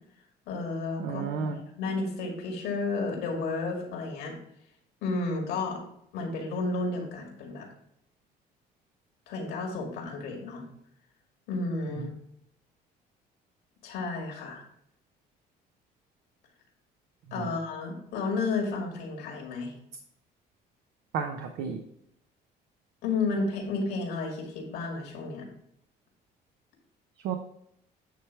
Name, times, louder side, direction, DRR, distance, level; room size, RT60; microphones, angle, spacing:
voice 1, 0.5-4.3 5.0-5.8 6.1-7.7 9.3-10.6 11.5-12.1 13.8-14.6 17.3-19.7 23.0-25.5, left 3 dB, 90° left, 1 dB, 2.2 m, -32 dB
voice 2, 1.0-1.6 12.0-12.1 17.3-17.6 21.1-21.8 27.2-27.4, right 6 dB, 75° right, 5 dB, 0.7 m, -32 dB
9.2 x 3.3 x 4.6 m, 0.73 s
cardioid pair, 110°, 17 cm